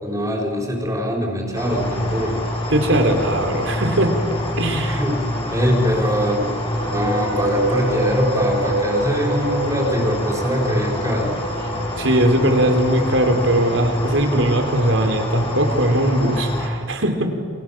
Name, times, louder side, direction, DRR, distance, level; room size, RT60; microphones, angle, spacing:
voice 1, 0.0-2.4 4.7-5.2 5.5-6.6 6.9-11.4, equal, 15° right, 0 dB, 5.4 m, -23 dB
sound 1, 1.5-16.7, left 1 dB, 30° left, 5.3 m, -26 dB
voice 2, 2.7-4.2 4.6-5.0 12.0-17.4, right 1 dB, 75° right, 5 dB, 3.9 m, -19 dB
sound 2, 6.7-13.9, right 2 dB, 60° right, 4.2 m, -27 dB
30.0 x 25.5 x 7.6 m, 2.1 s
head